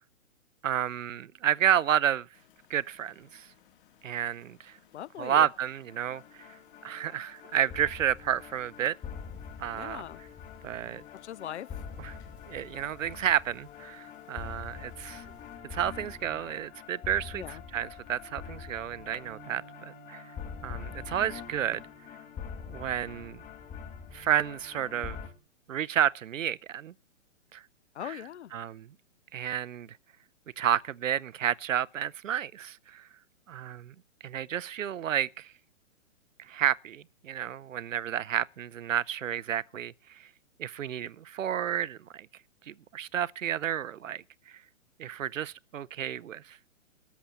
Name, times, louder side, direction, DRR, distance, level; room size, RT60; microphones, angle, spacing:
voice 1, 0.6-2.3 2.7-3.5 4.0-4.8 5.2-6.5 6.8-8.9 9.6-10.0 10.6-11.0 12.0-12.1 12.5-15.2 15.7-17.4 17.7-20.2 20.6-21.8 22.7-23.4 24.1-25.2 25.7-26.9 27.5-27.6 28.5-28.9 29.3-29.9 30.6-33.1 33.5-33.9 34.2-35.5 36.5-40.3 40.6-42.3 42.7-44.2 45.0-46.6, right 10 dB, 75° right, 0.6 m, -31 dB
sound 1, 2.3-15.6, left 12 dB, 40° left, 1.9 m, -63 dB
voice 2, 4.9-5.5 9.8-10.2 11.1-11.9 17.3-17.6 27.9-28.5, left 11 dB, 60° left, 0.6 m, -40 dB
sound 2, 5.9-25.3, left 7 dB, 20° left, 2.1 m, -44 dB
Bass guitar, 19.2-25.5, right 19 dB, 25° right, 1.0 m, -59 dB
13.0 x 7.3 x 7.3 m
figure-of-eight pair, 125°, 39 cm